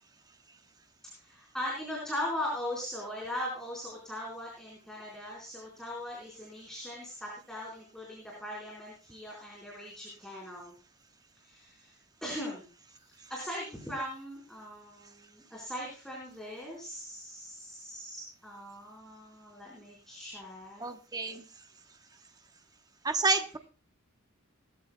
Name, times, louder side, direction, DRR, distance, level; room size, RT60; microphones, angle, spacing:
voice 1, 1.2-10.7 11.4-12.6 13.0-20.9, left 1 dB, ahead, -4 dB, 4.2 m, -40 dB
voice 2, 20.8-21.4 23.0-23.6, right 3 dB, 15° right, 7 dB, 0.9 m, -29 dB
19.5 x 13.5 x 2.2 m, 0.34 s
head